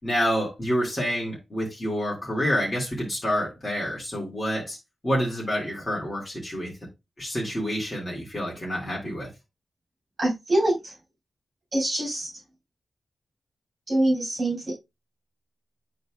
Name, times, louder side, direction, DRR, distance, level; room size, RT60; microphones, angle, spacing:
voice 1, 0.0-4.8 5.0-6.8 7.2-9.3, equal, 20° left, 2.4 m, -28 dB
voice 2, 10.2-10.9 11.7-12.3 13.9-14.7, right 1 dB, 40° right, 4.8 m, -24 dB
10.0 x 4.1 x 2.4 m
wide cardioid pair, 165°, 0 cm